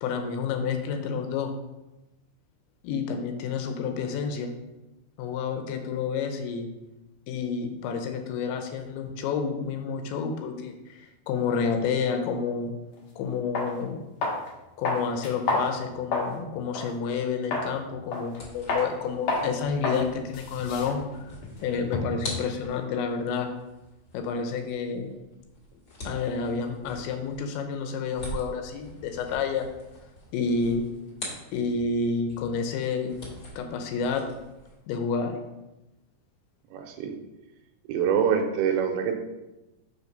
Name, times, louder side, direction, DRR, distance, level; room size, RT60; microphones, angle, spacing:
voice 1, 0.0-1.5 2.8-4.5 5.2-6.7 7.3-12.7 13.2-14.0 14.8-21.3 21.6-23.5 24.1-25.1 26.0-29.7 30.3-30.9 31.5-33.1 33.6-34.2 34.9-35.4, left 5 dB, 80° left, 5 dB, 2.9 m, -29 dB
sound 1, 13.0-13.1 13.5-13.7 14.2-14.5 14.8-16.4 16.7-16.9 17.5-17.7 18.1-18.4 18.7-18.9 19.3-19.5 19.8-20.0 20.3-22.3, left 3 dB, 65° left, 2.2 m, -29 dB
sound 2, 18.3-32.0 32.3-34.8, equal, 40° left, 1.8 m, -44 dB
voice 2, 36.7-37.1 37.9-39.1, right 7 dB, 85° right, 4 dB, 2.9 m, -25 dB
6.4 x 5.5 x 5.2 m, 1.0 s
omnidirectional pair, 5.4 m